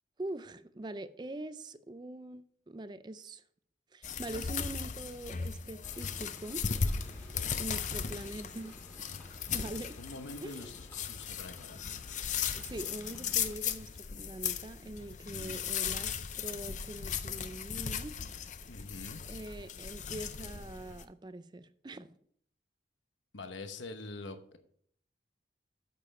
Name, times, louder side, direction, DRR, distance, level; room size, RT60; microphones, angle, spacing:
voice 1, 0.2-3.4 3.9-6.6 7.6-8.7 9.5-10.0 10.4-10.8 12.5-18.2 19.3-22.1, right 1 dB, 25° right, 0.4 m, -43 dB
sound 1, 4.0-21.0, left 7 dB, 40° left, 0.5 m, -37 dB
sound 2, 5.8-13.6, equal, 10° left, 1.9 m, -56 dB
voice 2, 10.0-11.8 15.3-15.6 18.7-19.2 23.3-24.6, left 2 dB, 85° left, 0.9 m, -45 dB
8.5 x 6.8 x 4.3 m
head